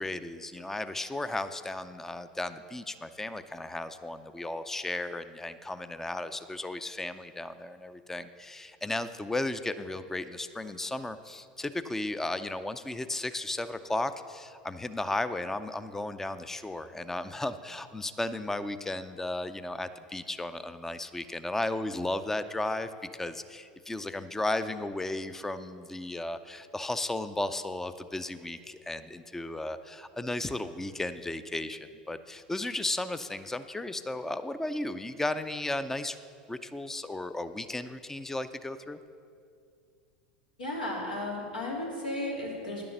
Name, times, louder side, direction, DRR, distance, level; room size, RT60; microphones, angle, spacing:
voice 1, 0.0-31.8 32.1-36.2 36.5-39.0, left 2 dB, 10° left, 12 dB, 0.5 m, -35 dB
voice 2, 40.6-42.8, left 1 dB, 85° left, -4 dB, 3.0 m, -34 dB
10.5 x 6.9 x 6.6 m, 2.3 s
hypercardioid pair, 90°, 5 cm